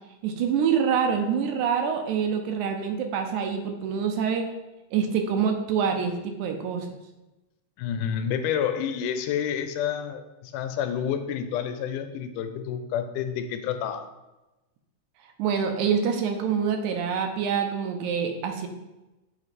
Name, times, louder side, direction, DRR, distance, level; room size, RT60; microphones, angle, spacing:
voice 1, 0.2-4.5 4.9-7.0 15.4-18.7, right 7 dB, 80° right, 5 dB, 1.9 m, -26 dB
voice 2, 7.8-14.1, left 8 dB, 85° left, 8 dB, 2.1 m, -29 dB
7.1 x 3.2 x 4.1 m, 1.0 s
omnidirectional pair, 3.6 m